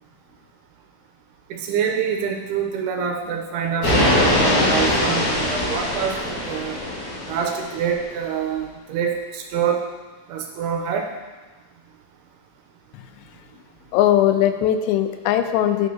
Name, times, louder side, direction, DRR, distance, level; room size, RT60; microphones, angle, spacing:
voice 1, 1.5-6.8 7.3-9.8 10.3-11.1, right 7 dB, 85° right, 2 dB, 2.5 m, -26 dB
sound 1, 3.8-7.8, left 1 dB, 50° left, 3.3 m, -21 dB
voice 2, 13.9-15.9, left 11 dB, 85° left, 7 dB, 2.8 m, -19 dB
12.0 x 6.3 x 2.7 m, 1.2 s
omnidirectional pair, 4.9 m